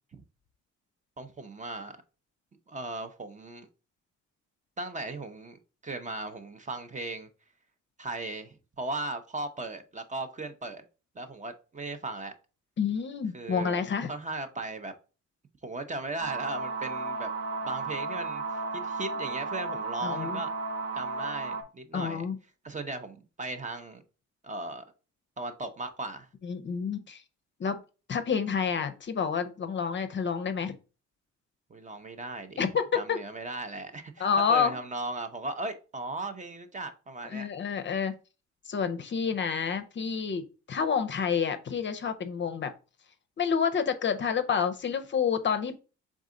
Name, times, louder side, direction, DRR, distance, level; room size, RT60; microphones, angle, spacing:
voice 1, 1.2-2.0 2.7-3.7 4.8-7.3 8.0-10.8 11.2-12.3 13.3-13.8 14.1-14.9 15.6-17.3 17.6-20.5 20.9-22.3 22.6-24.0 24.4-24.8 25.4-26.3 31.7-32.6 32.9-37.5, right 2 dB, 25° right, 0.6 m, -37 dB
voice 2, 12.8-14.1 20.0-20.4 21.9-22.4 26.4-27.2 27.6-27.8 28.1-30.7 32.6-33.2 34.2-34.7 37.3-38.1 38.7-42.7 43.4-45.8, left 6 dB, 40° left, 0.5 m, -29 dB
sound 1, 16.2-21.6, right 3 dB, 55° right, 0.9 m, -34 dB
4.0 x 3.6 x 3.7 m
cardioid pair, 90°, 30 cm